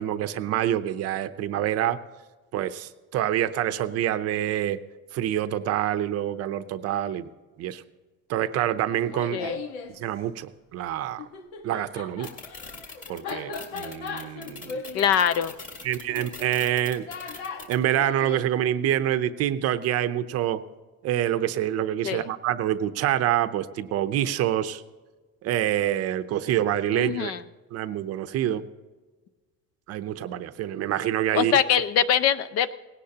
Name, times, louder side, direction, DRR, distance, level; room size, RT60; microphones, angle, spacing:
voice 1, 0.0-2.0 2.5-4.8 5.1-7.3 7.6-7.8 8.3-9.5 9.9-11.3 11.6-12.3 13.1-14.8 15.8-17.4 17.7-20.6 21.0-24.8 25.4-27.3 27.7-28.7 29.9-31.6, right 11 dB, 50° right, 11 dB, 0.7 m, -26 dB
Laughter, 8.9-9.9 11.2-18.5, left 4 dB, 85° left, 1.5 m, -38 dB
sound 1, 12.2-17.7, left 3 dB, 25° left, 2.0 m, -41 dB
voice 2, 14.9-15.5 22.0-22.2 26.9-27.4 31.3-32.7, left 9 dB, 50° left, 15 dB, 0.6 m, -23 dB
18.5 x 17.0 x 2.9 m, 1.3 s
cardioid pair, 170°, 33 cm